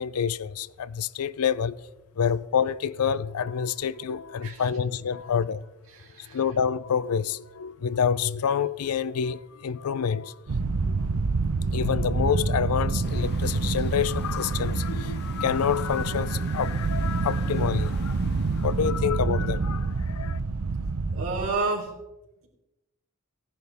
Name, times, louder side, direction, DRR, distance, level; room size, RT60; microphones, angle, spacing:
voice 1, 0.0-1.8 2.1-5.6 6.2-10.5 10.9-11.3 11.6-20.4, left 7 dB, 85° left, 0.4 m, -28 dB
voice 2, 5.9-6.5 14.5-14.6 21.1-22.0, right 3 dB, 65° right, 3.6 m, -31 dB
sound 1, 10.5-21.5, right 3 dB, 80° right, 0.7 m, -27 dB
sound 2, 13.0-19.2, left 3 dB, 50° left, 1.2 m, -46 dB
16.0 x 10.5 x 3.5 m
head